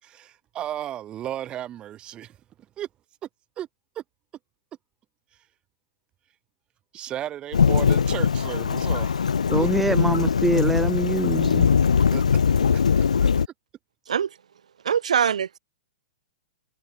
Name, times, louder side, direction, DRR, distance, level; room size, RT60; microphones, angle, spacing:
voice 1, 0.0-2.4 2.8-2.9 3.2-3.3 3.6-3.7 3.9-4.0 6.9-10.0 12.1-13.3, right 11 dB, 25° right, 6.7 m, -35 dB
Thunderstorm / Rain, 7.5-13.5, left 6 dB, 85° left, 0.5 m, -21 dB
voice 2, 9.5-11.7, right 1 dB, 5° right, 1.4 m, -24 dB
voice 3, 14.8-15.6, right 8 dB, 80° right, 2.7 m, -23 dB
hypercardioid pair, 120°, 4 cm